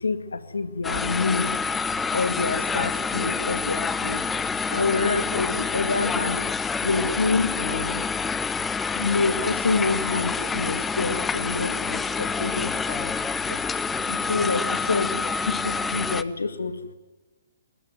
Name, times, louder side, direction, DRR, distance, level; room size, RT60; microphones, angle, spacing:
voice 1, 0.0-1.5 2.1-4.2 4.7-6.4 6.8-8.0 8.8-13.6 14.1-16.8, left 4 dB, 80° left, 10 dB, 2.1 m, -27 dB
sound 1, 0.8-16.2, left 5 dB, 10° left, 0.7 m, -27 dB
21.0 x 21.0 x 9.3 m, 1.1 s
figure-of-eight pair, 125°, 0 cm